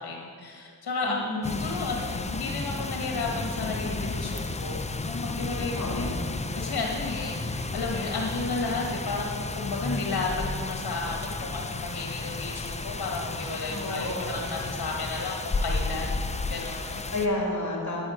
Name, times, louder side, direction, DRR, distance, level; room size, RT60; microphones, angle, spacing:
voice 1, 0.0-1.2 1.6-6.1 6.6-16.2 16.5-17.0, left 3 dB, 75° left, -1 dB, 1.4 m, -33 dB
voice 2, 1.1-1.7 5.7-6.1 13.7-14.4 17.1-18.1, left 2 dB, 50° left, -2 dB, 2.8 m, -31 dB
sound 1, 1.4-17.3, left 3 dB, 20° left, 0.5 m, -33 dB
10.0 x 9.9 x 5.0 m, 2.3 s
wide cardioid pair, 90°, 38 cm